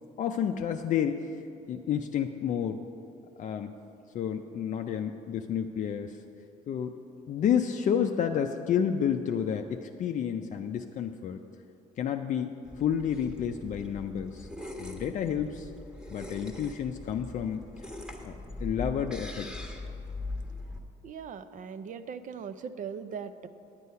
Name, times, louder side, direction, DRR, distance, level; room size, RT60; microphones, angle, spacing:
voice 1, 0.2-1.4 1.7-2.8 3.4-3.7 4.1-6.2 6.7-7.0 7.3-11.4 12.0-14.5 14.8-15.7 16.1-17.6 18.2-19.5, left 8 dB, 50° left, 5 dB, 0.5 m, -30 dB
sound 1, 12.6-20.8, left 2 dB, 5° right, 1.3 m, -41 dB
voice 2, 21.0-23.5, right 6 dB, 50° right, 12 dB, 0.6 m, -39 dB
10.5 x 8.1 x 5.6 m, 2.7 s
cardioid pair, 110°, 17 cm